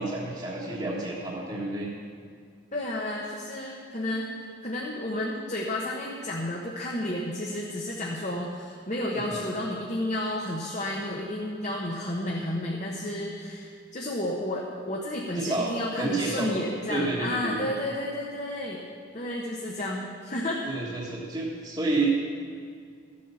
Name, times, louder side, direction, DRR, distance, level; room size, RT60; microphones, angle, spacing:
voice 1, 0.0-1.9 9.1-9.4 15.3-16.5 16.9-17.6 20.6-22.1, right 2 dB, 25° right, -7 dB, 1.5 m, -30 dB
voice 2, 2.7-4.3 4.6-18.8 19.1-20.6, left 1 dB, 35° left, -2 dB, 1.2 m, -31 dB
13.5 x 8.4 x 6.9 m, 2.2 s
head